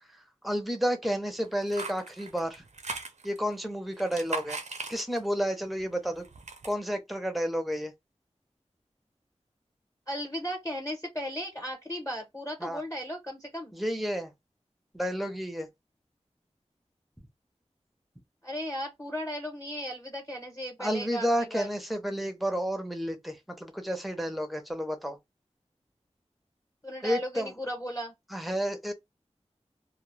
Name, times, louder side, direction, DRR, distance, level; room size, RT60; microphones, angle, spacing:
voice 1, 0.1-2.6 3.2-4.6 4.9-6.3 6.6-7.9 12.6-12.8 13.7-14.3 14.9-15.7 20.8-25.2 27.0-27.5 28.3-28.9, equal, ahead, 0.7 m, -31 dB
sound 1, 1.4-3.5 3.9-5.4 5.8-6.7, right 4 dB, 75° right, 0.5 m, -39 dB
voice 2, 10.1-13.7 18.4-21.7 26.8-28.1, equal, 20° left, 1.0 m, -36 dB
2.3 x 2.2 x 3.1 m
wide cardioid pair, 65°, 12 cm